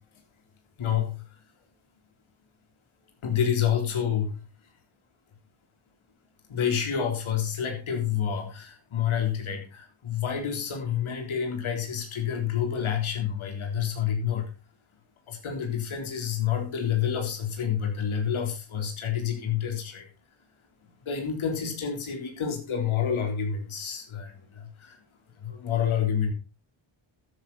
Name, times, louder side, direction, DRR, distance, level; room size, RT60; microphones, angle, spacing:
voice 1, 0.8-1.2 3.2-4.4 6.5-14.5 15.3-20.1 21.1-25.0 25.4-26.3, left 8 dB, 75° left, 3 dB, 4.0 m, -28 dB
12.5 x 10.5 x 4.2 m, 0.32 s
cardioid pair, 105°, 49 cm